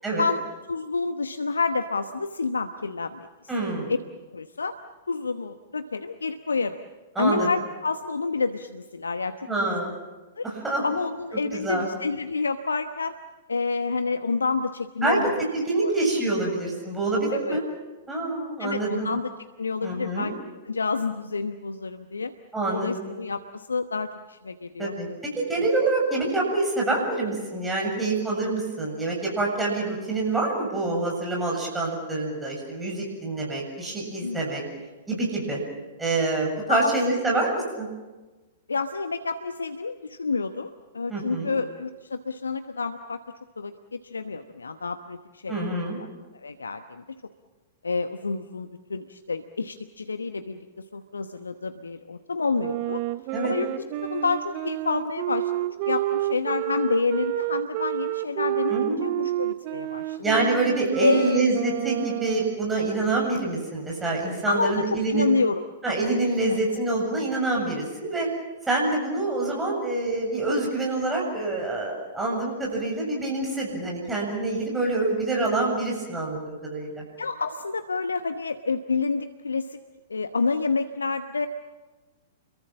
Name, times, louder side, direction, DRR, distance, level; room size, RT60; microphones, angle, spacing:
voice 1, 0.7-3.3 3.9-4.0 4.3-4.7 5.1-6.8 7.2-9.3 9.7-9.8 10.4-10.5 10.8-13.1 13.5-15.3 15.8-15.9 17.3-17.6 18.6-19.3 19.6-20.3 20.6-22.3 22.7-24.9 25.5-25.6 34.2-34.4 36.7-36.9 38.7-43.2 43.6-45.6 46.0-46.1 46.3-47.0 47.8-50.6 50.9-53.0 53.4-53.7 54.0-60.4 61.0-61.4 64.5-65.6 66.4-66.6 77.2-79.8 80.1-81.5, left 4 dB, 75° left, 9 dB, 1.0 m, -28 dB
voice 2, 3.5-3.9 7.2-7.5 9.5-9.9 10.4-10.8 11.5-11.9 15.0-17.6 18.1-19.1 19.8-20.3 22.5-23.0 24.8-34.6 35.1-35.6 36.0-37.9 41.1-41.6 45.5-46.0 53.3-53.5 58.7-59.2 60.2-65.3 65.8-68.3 68.7-77.0, right 2 dB, 10° right, -2 dB, 7.5 m, -26 dB
Wind instrument woodwind instrument, 52.6-62.6, right 16 dB, 40° right, 0.8 m, -29 dB
29.5 x 23.0 x 7.4 m, 1.2 s
figure-of-eight pair, 105°, 0 cm